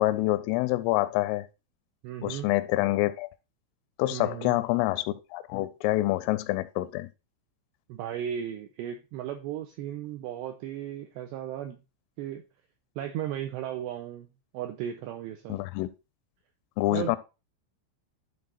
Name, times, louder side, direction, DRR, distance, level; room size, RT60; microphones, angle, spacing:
voice 1, 0.0-1.5 2.2-3.3 4.0-7.1 15.5-15.9 16.8-17.2, left 17 dB, 85° left, 3.1 m, -26 dB
voice 2, 2.0-2.5 4.1-4.6 7.9-11.8 12.2-12.4 13.0-14.3 14.5-15.6 16.9-17.1, right 10 dB, 90° right, 2.5 m, -35 dB
11.5 x 4.1 x 4.0 m
omnidirectional pair, 5.8 m